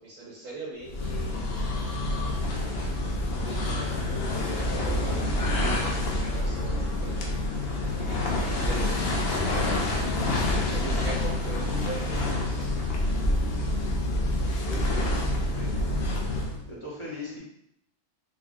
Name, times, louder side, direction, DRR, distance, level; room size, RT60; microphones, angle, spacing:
voice 1, 0.0-1.6 3.4-5.3 5.7-7.6 7.9-8.2 8.5-9.9 10.6-12.8, right 2 dB, 90° right, -6 dB, 1.3 m, -41 dB
sound 1, 0.9-16.7, left 1 dB, 60° left, 0.8 m, -27 dB
voice 2, 14.7-15.1 15.4-15.7 16.7-17.4, left 2 dB, 30° left, -6 dB, 0.8 m, -39 dB
3.7 x 2.2 x 3.5 m, 0.76 s
omnidirectional pair, 1.3 m